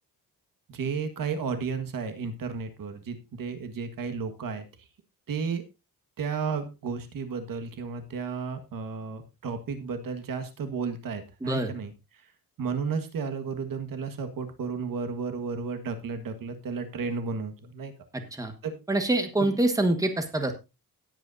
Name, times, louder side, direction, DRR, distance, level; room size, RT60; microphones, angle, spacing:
voice 1, 0.7-4.6 5.3-5.6 6.2-12.2 12.6-17.9 18.6-18.8 19.4-19.6, right 5 dB, 60° right, 7 dB, 1.7 m, -33 dB
voice 2, 18.1-18.5 18.9-20.5, right 1 dB, 10° right, 6 dB, 1.5 m, -25 dB
18.0 x 8.3 x 2.7 m, 0.26 s
wide cardioid pair, 155°, 37 cm